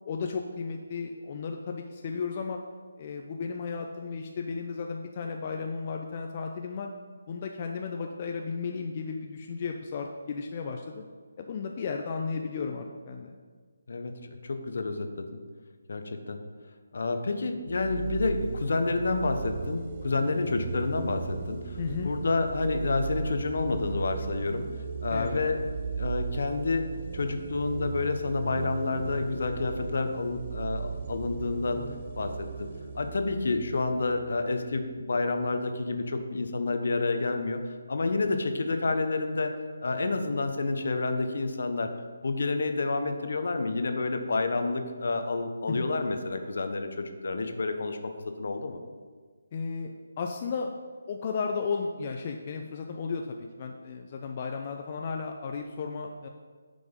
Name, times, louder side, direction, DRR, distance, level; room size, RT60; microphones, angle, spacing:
voice 1, 0.0-2.6 3.0-6.9 7.3-11.0 11.4-13.4 21.8-22.1 25.1-25.4 45.7-45.9 49.5-49.9 50.2-50.7 51.1-56.3, left 5 dB, 35° left, 3 dB, 0.6 m, -34 dB
voice 2, 13.9-15.3 15.9-16.4 16.9-21.8 22.0-24.7 25.0-25.6 25.9-26.9 27.1-31.8 32.2-32.3 32.6-32.7 32.9-39.5 39.8-41.9 42.2-48.8, left 3 dB, 60° left, 7 dB, 1.0 m, -29 dB
sound 1, 17.7-35.1, right 6 dB, 40° right, 0.6 m, -37 dB
9.6 x 5.2 x 5.3 m, 1.5 s
figure-of-eight pair, 150°, 0 cm